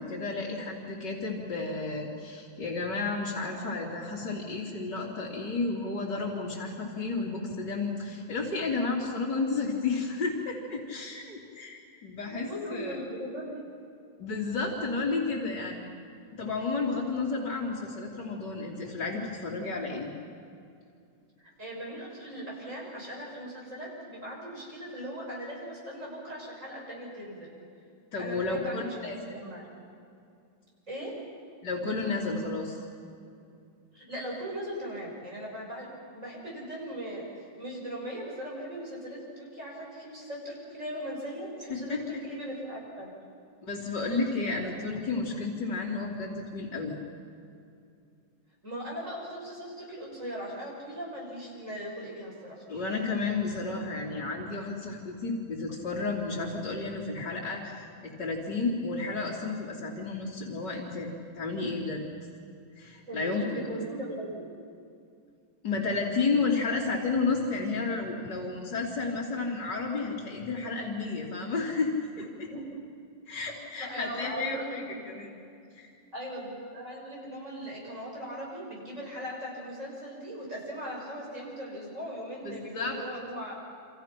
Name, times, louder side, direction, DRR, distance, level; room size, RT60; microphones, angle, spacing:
voice 1, 0.0-13.0 14.2-15.8 16.3-20.1 28.1-29.2 31.6-32.8 41.7-42.0 43.6-47.0 52.7-61.1 61.4-62.0 62.8-63.7 65.6-72.5 73.3-75.3 75.8-75.9 82.4-83.0, left 3 dB, 60° left, -7 dB, 3.7 m, -32 dB
voice 2, 12.2-13.6 21.6-27.5 28.2-29.7 30.9-31.2 33.9-37.3 37.6-43.1 48.6-52.6 63.1-64.4 72.5-72.6 73.8-75.0 76.1-83.5, equal, 40° right, -3 dB, 7.2 m, -39 dB
29.0 x 27.5 x 6.0 m, 2.4 s
omnidirectional pair, 2.1 m